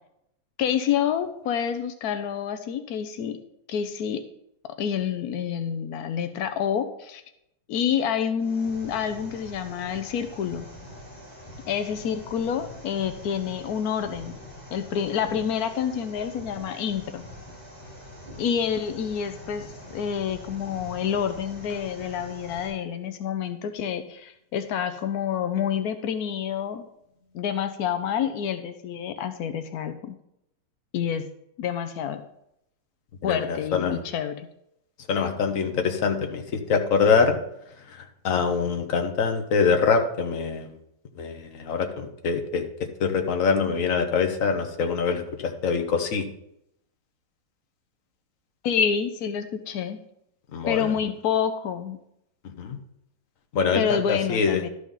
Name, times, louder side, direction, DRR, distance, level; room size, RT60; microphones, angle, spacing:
voice 1, 0.6-3.4 3.7-4.2 4.8-7.2 7.7-10.7 11.7-14.3 14.7-17.2 18.4-26.9 27.3-30.2 30.9-31.2 31.6-32.2 33.2-34.5 48.6-50.0 50.7-52.0 53.8-54.7, left 8 dB, 80° left, 9 dB, 0.8 m, -28 dB
sound 1, 8.4-22.7, left 1 dB, 10° left, 4.7 m, -44 dB
voice 2, 33.2-34.0 35.1-37.4 37.7-40.8 41.2-42.6 43.0-46.3 50.5-51.0 52.4-52.8 53.5-54.7, left 5 dB, 50° left, 5 dB, 1.1 m, -24 dB
12.0 x 4.9 x 5.4 m, 0.77 s
omnidirectional pair, 2.4 m